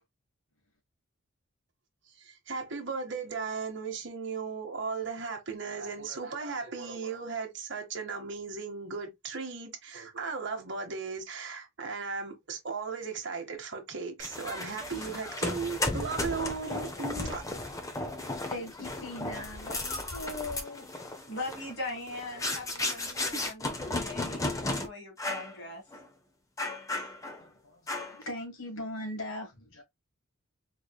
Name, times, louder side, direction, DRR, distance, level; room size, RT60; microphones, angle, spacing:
voice 1, 2.1-17.4, right 4 dB, 55° right, 1.0 m, -36 dB
sound 1, 14.2-24.9 25.2-25.5 25.9-26.1 26.6-27.4 27.9-28.3, left 2 dB, 15° left, 0.6 m, -35 dB
voice 2, 18.5-20.8 27.4-29.8, left 1 dB, 70° left, 1.6 m, -40 dB
voice 3, 21.3-25.8, left 2 dB, 55° left, 1.7 m, -40 dB
3.9 x 3.2 x 2.2 m
head